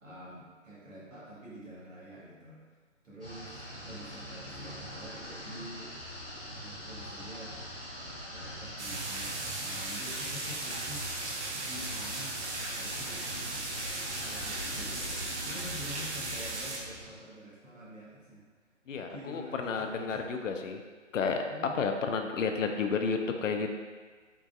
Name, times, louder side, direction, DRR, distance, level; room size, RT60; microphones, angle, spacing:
voice 1, 0.0-2.6 3.0-7.6 7.9-13.6 14.2-15.0 15.4-18.4 18.9-20.3 21.5-21.8, equal, 90° right, -7 dB, 1.4 m, -47 dB
sound 1, 3.2-17.1, equal, 5° left, 0.5 m, -43 dB
sound 2, 8.8-16.8, right 2 dB, 60° right, 0.6 m, -37 dB
voice 2, 18.9-20.8 21.1-21.4 21.8-23.7, left 5 dB, 75° left, 5 dB, 0.5 m, -31 dB
3.7 x 2.6 x 2.3 m, 1.4 s
figure-of-eight pair, 155°, 38 cm